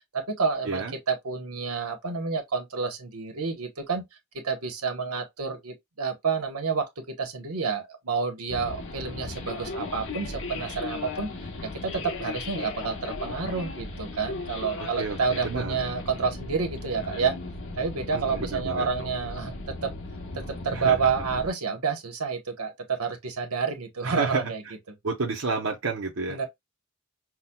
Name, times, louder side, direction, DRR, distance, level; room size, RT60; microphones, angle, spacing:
voice 1, 0.1-4.0 4.4-6.9 7.2-11.3 11.6-17.4 17.8-19.9 20.3-24.6 26.3-26.5, right 5 dB, 85° right, 1.1 m, -29 dB
sound 1, 8.5-21.5, left 3 dB, 55° left, 0.9 m, -37 dB
voice 2, 14.8-15.8 18.1-18.9 20.7-21.1 24.0-24.4 25.0-26.4, right 4 dB, 65° right, 0.7 m, -30 dB
5.7 x 2.2 x 2.2 m
head